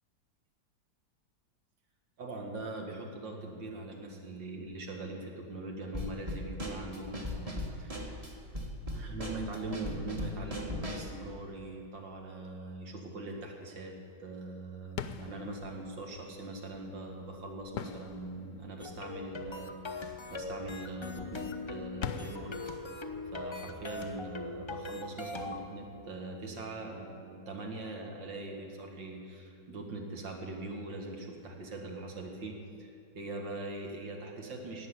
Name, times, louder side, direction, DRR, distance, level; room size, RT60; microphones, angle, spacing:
voice 1, 2.2-8.4 8.9-13.9 14.2-22.6 23.3-34.9, right 2 dB, 75° right, 1 dB, 2.6 m, -42 dB
Drum kit / Snare drum, 5.9-11.2, equal, 20° right, 1.4 m, -38 dB
sound 1, 14.9-25.5, left 8 dB, 70° left, 1.1 m, -46 dB
sound 2, 18.8-25.7, left 3 dB, 50° left, 0.3 m, -41 dB
17.5 x 6.8 x 9.7 m, 2.6 s
omnidirectional pair, 2.0 m